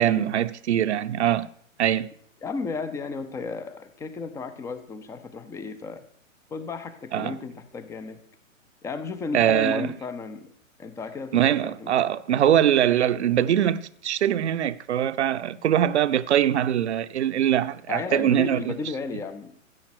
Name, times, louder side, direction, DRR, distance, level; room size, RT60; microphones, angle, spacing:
voice 1, 0.0-1.5 1.8-2.1 7.1-7.4 9.3-9.9 11.3-18.7, right 10 dB, 55° right, 0.8 m, -22 dB
voice 2, 2.4-6.0 6.5-8.2 8.8-10.5 10.8-11.9 17.9-19.6, left 4 dB, 5° left, 0.6 m, -34 dB
14.0 x 8.6 x 6.0 m
figure-of-eight pair, 120°, 40 cm